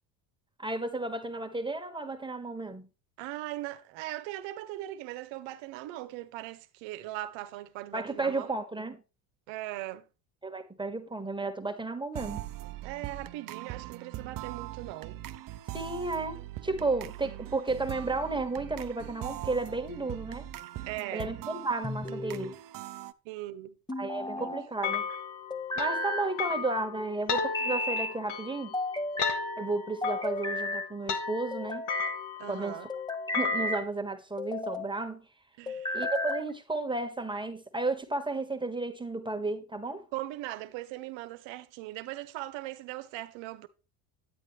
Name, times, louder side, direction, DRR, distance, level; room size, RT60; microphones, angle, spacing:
voice 1, 0.6-2.9 7.9-9.0 10.4-12.4 15.7-20.5 21.1-22.6 24.0-25.1 25.8-28.7 29.6-31.9 32.5-32.8 33.3-35.3 35.9-40.1, right 3 dB, 10° right, 1.6 m, -33 dB
voice 2, 3.2-8.5 9.5-10.1 12.8-15.2 20.9-21.3 23.2-23.8 24.3-24.6 24.8-24.9 32.4-32.9 35.6-36.0 40.1-43.7, right 16 dB, 70° right, 1.1 m, -39 dB
sound 1, 12.1-23.1, right 13 dB, 45° right, 0.7 m, -41 dB
sound 2, 21.8-22.5 23.9-24.7 25.5-26.3 27.4-28.1 28.7-29.4 30.0-30.9 31.5-32.2 32.9-33.9 34.4-34.9 35.7-36.5, left 2 dB, 10° left, 1.1 m, -33 dB
sound 3, 24.8-33.8, left 6 dB, 60° left, 1.6 m, -36 dB
9.5 x 9.1 x 3.3 m
hypercardioid pair, 75°, 46 cm